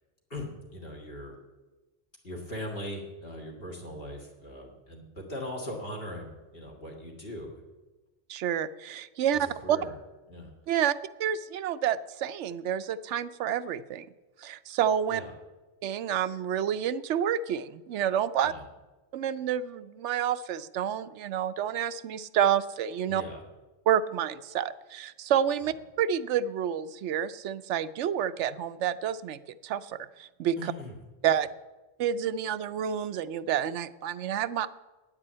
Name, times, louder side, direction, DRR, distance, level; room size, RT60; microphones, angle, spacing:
voice 1, 0.3-1.3 2.2-7.6 9.3-9.9 10.3-10.5 15.1-15.3 18.4-18.6 23.1-23.4 30.6-31.0 31.2-31.3, equal, 55° left, 1 dB, 2.2 m, -40 dB
voice 2, 8.3-9.8 10.7-10.9 11.2-14.1 14.4-15.2 15.8-18.5 19.1-23.2 23.9-30.7 31.2-31.5 32.0-34.7, right 9 dB, 90° right, 14 dB, 0.9 m, -29 dB
9.7 x 9.2 x 8.7 m, 1.2 s
omnidirectional pair, 1.2 m